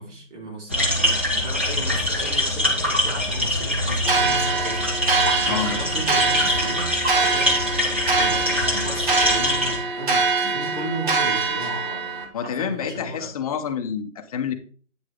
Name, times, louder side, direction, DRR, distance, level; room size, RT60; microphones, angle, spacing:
voice 1, 0.0-5.0 5.4-7.6 8.2-12.0 12.4-13.3, right 1 dB, 65° right, -1 dB, 4.5 m, -35 dB
sound 1, 0.7-9.8, left 1 dB, 10° right, 0.4 m, -24 dB
sound 2, 4.0-12.2, right 4 dB, 40° right, 1.8 m, -24 dB
voice 2, 5.4-5.8 10.4-10.5 12.3-14.5, left 7 dB, 30° left, 7 dB, 0.8 m, -28 dB
8.8 x 6.5 x 3.5 m, 0.42 s
figure-of-eight pair, 145°, 39 cm